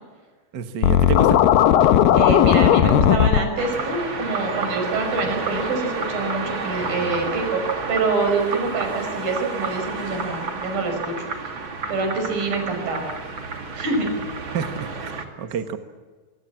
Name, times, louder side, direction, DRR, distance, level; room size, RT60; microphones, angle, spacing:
voice 1, 0.5-1.4 14.5-15.1 15.4-15.8, right 6 dB, 55° right, 7 dB, 1.2 m, -28 dB
Scratching (performance technique), 0.8-3.4, left 11 dB, 80° left, 2.6 m, -15 dB
voice 2, 1.8-7.6 7.9-11.3 11.9-13.1 13.7-14.1, right 3 dB, 75° right, 5 dB, 7.6 m, -25 dB
sound 1, 3.6-15.3, right 4 dB, 35° right, 2.7 m, -30 dB
25.0 x 23.5 x 7.4 m, 1.4 s
omnidirectional pair, 4.1 m